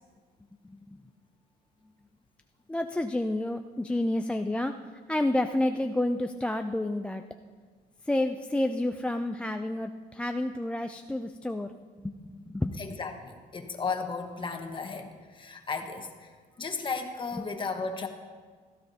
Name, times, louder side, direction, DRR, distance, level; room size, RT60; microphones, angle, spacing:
voice 1, 0.6-1.0 2.7-4.8 5.1-7.2 8.0-11.7 12.0-12.8, left 1 dB, 5° left, 5 dB, 0.4 m, -29 dB
voice 2, 12.7-16.3 16.6-18.1, left 4 dB, 30° left, 5 dB, 1.3 m, -35 dB
16.0 x 13.5 x 2.8 m, 1.6 s
cardioid pair, 110°, 17 cm